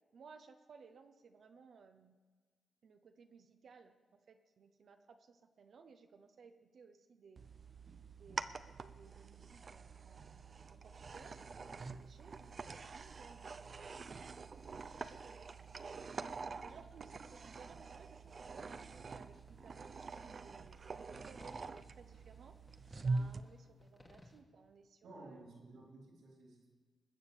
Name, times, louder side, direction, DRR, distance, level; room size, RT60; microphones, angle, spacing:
voice 1, 0.1-2.2 2.8-7.5 8.2-22.5 23.0-25.5, right 5 dB, 70° right, 5 dB, 0.9 m, -60 dB
sound 1, 7.4-23.4, right 4 dB, 50° right, 0.6 m, -45 dB
sound 2, 11.0-24.4, left 1 dB, 30° left, 2.3 m, -67 dB
voice 2, 25.0-26.8, right 2 dB, 85° right, 0 dB, 3.6 m, -56 dB
20.5 x 7.2 x 6.9 m, 1.4 s
cardioid pair, 55°, 0 cm